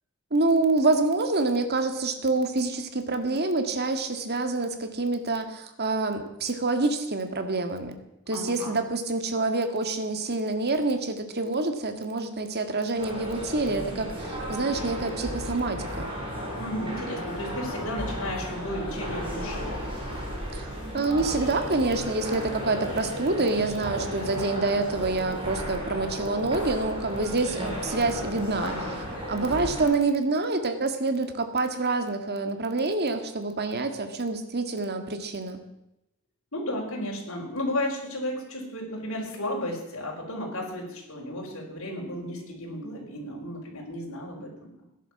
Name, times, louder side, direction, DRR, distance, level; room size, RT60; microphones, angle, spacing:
voice 1, 0.3-8.0 8.3-16.1 20.5-20.7 20.9-28.7 29.3-35.6, right 3 dB, 50° right, 7 dB, 2.0 m, -27 dB
voice 2, 8.3-8.8 16.6-19.7 28.6-29.0 36.5-44.7, left 1 dB, 70° left, -3 dB, 5.1 m, -33 dB
sound 1, 12.9-29.9, equal, 25° right, 8.0 m, -34 dB
16.5 x 11.0 x 7.3 m, 0.87 s
head